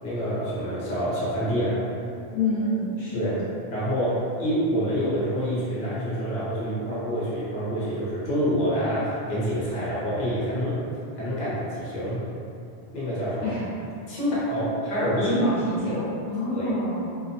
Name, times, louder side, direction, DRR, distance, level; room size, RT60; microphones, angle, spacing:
voice 1, 0.0-1.8 3.1-3.4 3.7-10.8 11.1-12.2 12.9-13.5 14.1-15.4 16.5-16.7, equal, 55° left, -9 dB, 0.9 m, -27 dB
voice 2, 2.3-3.3 13.4-13.7 15.3-17.2, left 1 dB, 80° left, -9 dB, 0.9 m, -27 dB
2.7 x 2.1 x 2.6 m, 2.6 s
omnidirectional pair, 1.1 m